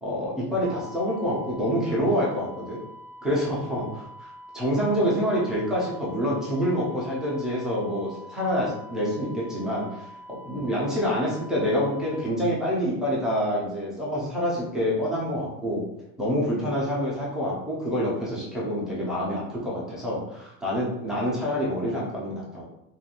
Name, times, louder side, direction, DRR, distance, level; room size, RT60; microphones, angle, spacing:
voice 1, 0.0-2.8 3.2-10.1 10.5-15.8 16.2-22.6, equal, ahead, -7 dB, 0.3 m, -27 dB
sound 1, 0.6-12.3, equal, 60° right, 0.5 m, -45 dB
2.5 x 2.3 x 2.8 m, 0.82 s
cardioid pair, 170°, 45 cm